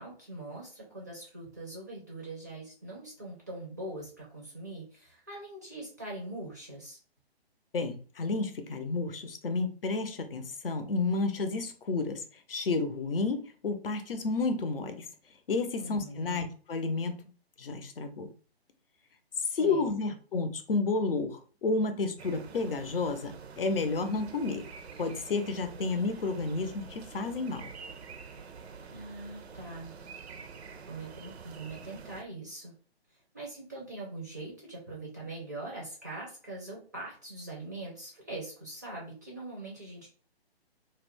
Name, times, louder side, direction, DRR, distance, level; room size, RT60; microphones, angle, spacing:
voice 1, 0.0-7.0 15.8-16.4 19.4-19.9 28.9-29.9 30.9-32.7 33.3-40.1, right 2 dB, 20° right, -4 dB, 0.4 m, -42 dB
voice 2, 7.7-12.2 12.5-15.0 15.5-17.1 17.6-18.3 19.5-24.6 25.0-27.7, left 3 dB, 60° left, 8 dB, 0.6 m, -31 dB
sound 1, 22.2-32.2, right 5 dB, 80° right, 0.5 m, -47 dB
2.3 x 2.1 x 3.4 m, 0.39 s
figure-of-eight pair, 140°, 32 cm